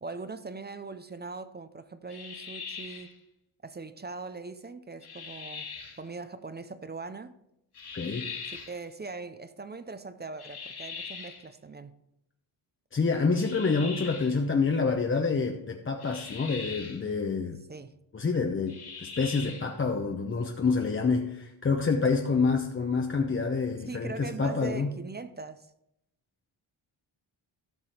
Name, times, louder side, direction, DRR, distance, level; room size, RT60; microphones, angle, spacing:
voice 1, 0.0-3.1 3.6-5.7 6.0-7.3 8.5-11.9 17.7-18.0 23.9-25.7, right 3 dB, 25° right, 0.4 m, -41 dB
sound 1, 2.1-3.1 5.0-6.0 7.7-8.8 10.4-11.5 13.3-14.4 16.0-17.0 18.7-19.7, left 5 dB, 50° left, 2.3 m, -41 dB
voice 2, 7.9-8.3 12.9-17.6 18.1-24.9, left 4 dB, 25° left, 0.7 m, -27 dB
12.5 x 6.8 x 4.4 m
wide cardioid pair, 155°, 48 cm